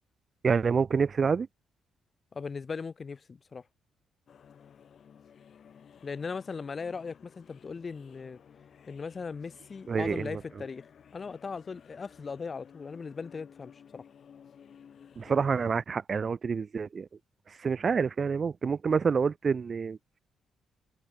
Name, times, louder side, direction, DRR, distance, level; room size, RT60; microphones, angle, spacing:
voice 1, 0.4-1.5 9.9-10.4 15.2-17.1 17.5-20.0, right 5 dB, 40° right, 0.4 m, -27 dB
voice 2, 2.3-3.6 6.0-8.4 8.9-10.9 11.1-14.0, left 5 dB, 35° left, 0.3 m, -38 dB
sound 1, 4.3-15.8, left 7 dB, 55° left, 1.2 m, -55 dB
cardioid pair, 90°, 0 cm